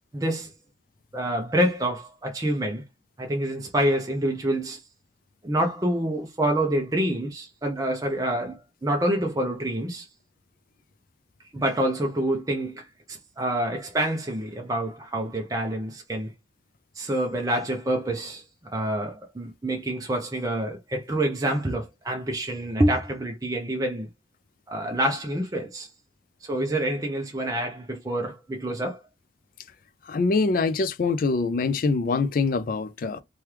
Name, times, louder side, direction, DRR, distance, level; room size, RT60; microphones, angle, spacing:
voice 1, 0.1-0.5 1.1-2.8 3.2-4.8 5.4-10.1 11.5-16.3 17.0-18.4 18.7-24.1 24.7-25.9 26.4-29.0, right 1 dB, 20° right, 0.5 m, -27 dB
voice 2, 30.1-33.2, left 4 dB, 50° left, 0.4 m, -24 dB
3.0 x 2.3 x 3.2 m
head